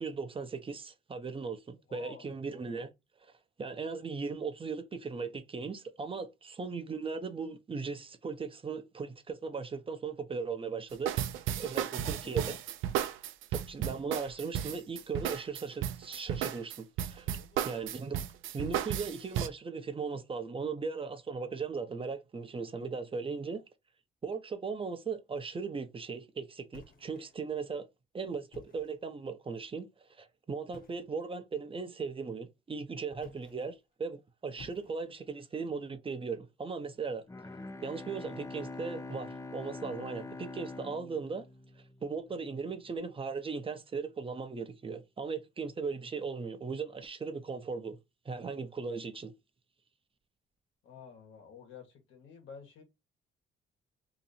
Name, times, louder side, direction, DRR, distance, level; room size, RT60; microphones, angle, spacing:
voice 1, 0.0-2.9 3.6-11.1 11.6-12.6 13.5-17.3 17.6-18.3 18.5-23.6 24.2-27.9 28.1-29.9 30.2-37.2 37.8-41.4 42.0-48.0 48.2-49.3, right 5 dB, 25° right, 0.6 m, -38 dB
voice 2, 1.9-2.3 11.7-12.6 17.2-17.7 50.8-52.8, left 5 dB, 80° left, 1.3 m, -51 dB
sound 1, 10.9-19.5, right 11 dB, 85° right, 0.4 m, -34 dB
sound 2, 26.7-27.5 28.4-29.1 30.7-31.2 33.1-33.8 34.6-35.3, left 3 dB, 45° left, 1.1 m, -54 dB
Bowed string instrument, 37.3-42.2, left 2 dB, 15° left, 0.4 m, -44 dB
2.9 x 2.5 x 4.1 m
cardioid pair, 90°, 20 cm